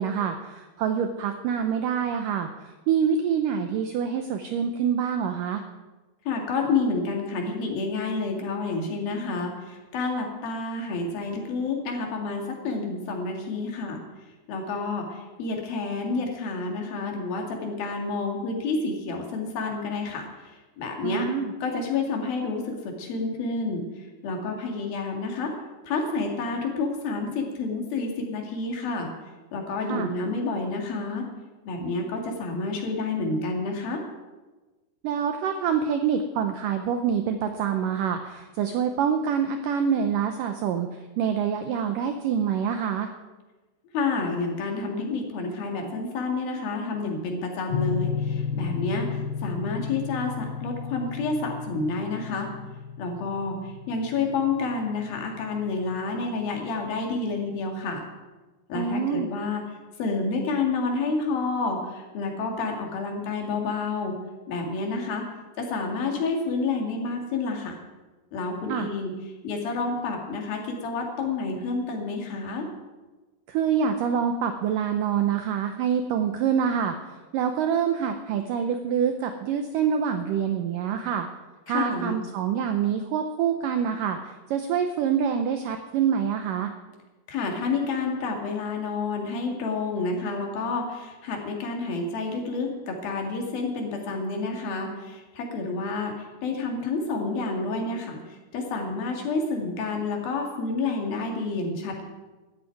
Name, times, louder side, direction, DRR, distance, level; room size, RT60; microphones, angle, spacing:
voice 1, 0.0-5.6 21.0-21.5 29.8-30.1 35.0-40.9 41.2-43.1 58.8-59.3 68.7-68.9 73.5-81.3 81.7-86.7, right 7 dB, 85° right, 6 dB, 1.9 m, -26 dB
voice 2, 6.3-14.0 14.5-21.3 21.6-25.5 25.9-29.1 29.5-31.3 31.7-34.0 43.9-52.5 53.0-58.0 58.7-59.6 60.0-64.2 64.5-65.3 65.6-67.8 68.3-69.1 69.4-72.7 81.7-82.2 87.3-102.1, left 3 dB, 65° left, 2 dB, 3.7 m, -29 dB
sound 1, 47.7-56.4, left 7 dB, 80° left, 2.4 m, -33 dB
14.0 x 8.1 x 9.2 m, 1.2 s
omnidirectional pair, 4.8 m